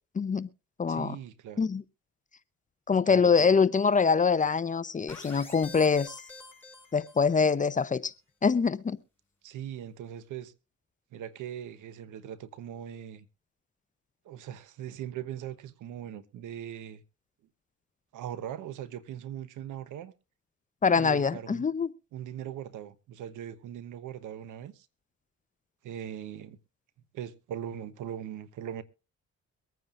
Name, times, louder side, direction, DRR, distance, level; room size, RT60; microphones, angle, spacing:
voice 1, 0.1-0.5 0.8-1.2 1.6-1.8 2.9-6.2 6.9-8.1 8.4-9.0 20.8-21.9, left 5 dB, 25° left, 0.6 m, -24 dB
voice 2, 0.9-1.7 3.1-3.5 9.4-10.5 11.1-13.3 14.2-17.0 18.1-20.1 20.9-21.7 22.1-24.9 25.8-26.6 27.1-28.8, right 10 dB, 80° right, 1.0 m, -40 dB
sound 1, 5.1-7.5, left 3 dB, 5° left, 5.2 m, -47 dB
23.5 x 9.3 x 2.5 m
cardioid pair, 90°, 30 cm